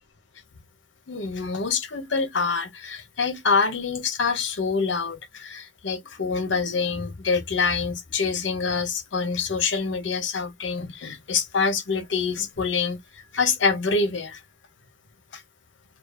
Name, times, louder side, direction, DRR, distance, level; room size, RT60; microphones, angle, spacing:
voice 1, 1.1-14.4 15.3-15.4, left 4 dB, 75° left, 0.7 m, -26 dB
2.4 x 2.4 x 2.3 m
head